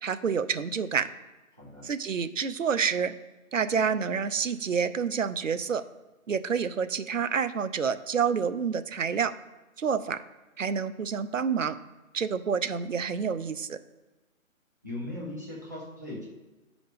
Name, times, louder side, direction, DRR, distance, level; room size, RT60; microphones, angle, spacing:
voice 1, 0.0-1.1 1.8-3.1 3.5-5.8 6.3-9.3 9.8-10.2 10.6-11.8 12.1-13.8, right 6 dB, 65° right, 13 dB, 0.6 m, -28 dB
voice 2, 1.5-1.9 14.8-16.3, left 1 dB, 15° right, -4 dB, 0.7 m, -38 dB
9.2 x 5.0 x 3.3 m, 1.1 s
figure-of-eight pair, 150°, 41 cm